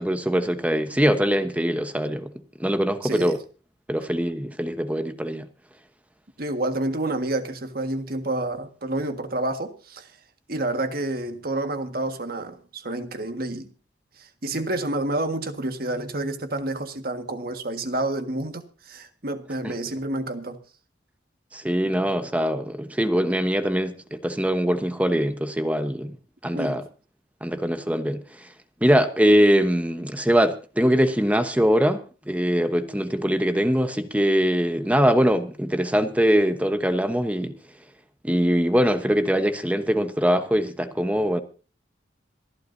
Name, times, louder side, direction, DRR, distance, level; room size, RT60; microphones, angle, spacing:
voice 1, 0.0-2.3 2.6-3.4 3.9-5.5 19.6-19.7 21.5-26.1 26.4-26.8 27.4-28.5 28.8-37.5 38.2-41.4, equal, 10° right, 1.0 m, -22 dB
voice 2, 3.0-3.4 6.4-10.1 10.5-13.7 14.2-20.6 21.8-22.1 26.5-26.8, right 2 dB, 50° right, 1.7 m, -29 dB
26.5 x 11.5 x 2.7 m
head